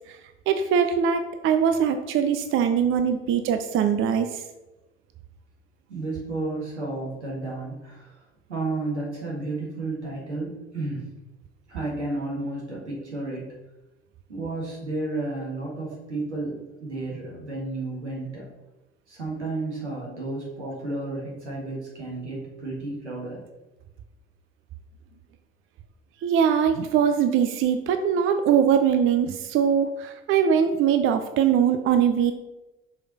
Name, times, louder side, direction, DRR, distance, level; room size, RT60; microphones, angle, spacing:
voice 1, 0.5-4.4 26.2-32.3, right 8 dB, 40° right, 8 dB, 0.6 m, -22 dB
voice 2, 5.9-8.1 8.5-11.0 11.7-13.4 14.3-18.5 19.1-23.4, right 2 dB, 80° right, -4 dB, 1.9 m, -32 dB
6.1 x 5.0 x 4.0 m, 1.0 s
figure-of-eight pair, 55°, 34 cm